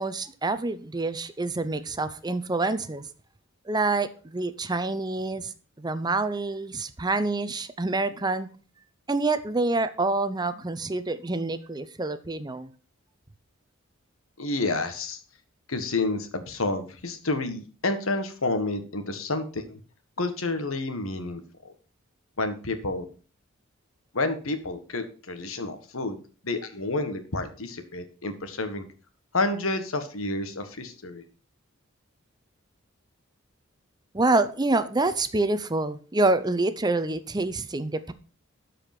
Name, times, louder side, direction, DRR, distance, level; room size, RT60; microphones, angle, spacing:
voice 1, 0.0-3.0 3.7-5.5 5.8-8.5 9.1-12.7 34.1-38.1, right 2 dB, 20° right, 0.7 m, -27 dB
voice 2, 14.4-15.2 15.7-19.8 20.2-21.7 22.4-23.1 24.1-26.2 26.4-28.8 29.3-31.2, left 2 dB, 80° left, 1.5 m, -29 dB
12.5 x 5.0 x 6.0 m
head